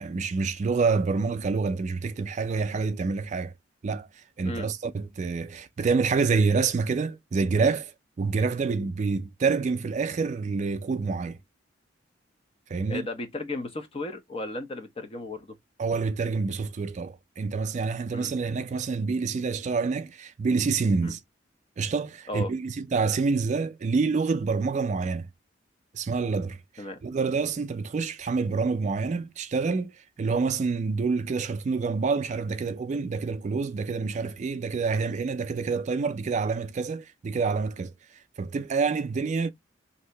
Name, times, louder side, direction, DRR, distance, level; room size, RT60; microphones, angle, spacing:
voice 1, 0.0-3.5 3.8-7.9 8.2-11.4 12.7-13.1 15.8-21.2 21.8-25.3 25.9-39.5, right 4 dB, 40° right, 0.3 m, -27 dB
voice 2, 12.9-15.6 18.1-18.3 21.0-21.1 22.3-22.5 26.8-27.0, left 2 dB, 30° left, 0.7 m, -35 dB
2.7 x 2.6 x 3.3 m
head